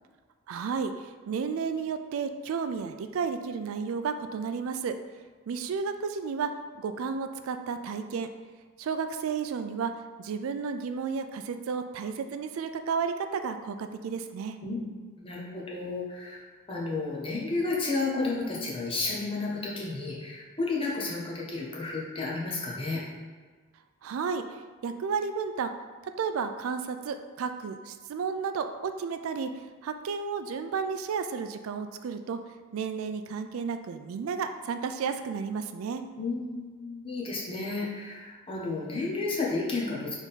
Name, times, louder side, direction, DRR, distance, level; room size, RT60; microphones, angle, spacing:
voice 1, 0.5-4.9 5.5-8.3 8.8-9.9 10.2-14.6 24.0-25.7 26.2-29.5 29.8-32.4 32.7-36.0, right 5 dB, 85° right, 8 dB, 0.3 m, -32 dB
voice 2, 15.2-16.4 16.7-23.0 36.2-40.1, left 3 dB, 25° left, -4 dB, 0.9 m, -32 dB
3.7 x 3.5 x 4.1 m, 1.5 s
head